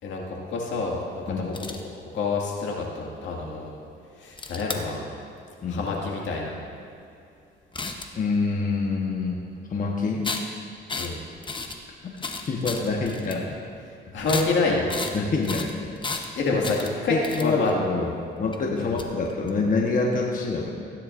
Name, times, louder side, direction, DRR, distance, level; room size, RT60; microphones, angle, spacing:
voice 1, 0.0-1.5 2.1-3.7 4.2-5.1 5.7-6.6 11.0-11.2 14.1-14.9 16.4-17.7 18.8-19.0, left 3 dB, 75° left, -2 dB, 2.1 m, -27 dB
sound 1, 1.5-1.8 4.3-4.8 7.7-8.2 10.2-10.4 10.9-11.1 11.4-11.7 12.1-13.3 14.2-14.5 14.9-15.2 15.4-16.3 16.6-17.7 18.5-18.6 18.9-19.5, left 3 dB, 25° left, 0.9 m, -33 dB
voice 2, 8.1-9.4 9.7-10.3 12.5-13.6 15.1-15.7 16.5-16.6 17.1-20.7, left 3 dB, 40° left, -1 dB, 1.2 m, -26 dB
16.0 x 10.0 x 2.6 m, 2.5 s
cardioid pair, 90°, 20 cm